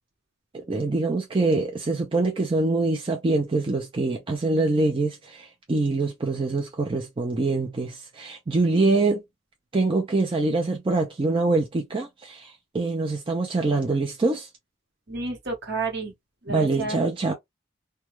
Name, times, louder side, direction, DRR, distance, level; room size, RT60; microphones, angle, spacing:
voice 1, 0.5-9.2 9.7-14.5 16.5-17.3, right 3 dB, 25° right, 0.4 m, -24 dB
voice 2, 15.1-16.1 16.4-17.0, right 3 dB, 55° right, 1.0 m, -30 dB
2.2 x 2.2 x 3.0 m
head